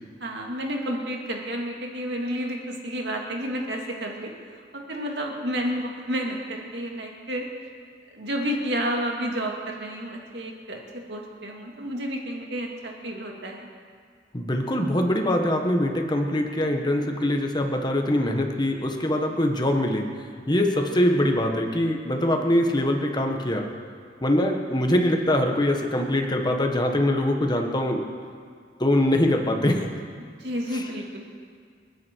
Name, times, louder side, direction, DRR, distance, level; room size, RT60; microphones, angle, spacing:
voice 1, 0.2-4.3 4.7-7.5 8.1-13.7 30.4-31.3, equal, 70° right, 0 dB, 2.5 m, -31 dB
voice 2, 14.3-20.1 20.5-23.6 24.2-28.0 28.8-29.8, left 1 dB, 25° left, 3 dB, 1.5 m, -23 dB
29.0 x 9.8 x 4.7 m, 2.1 s
head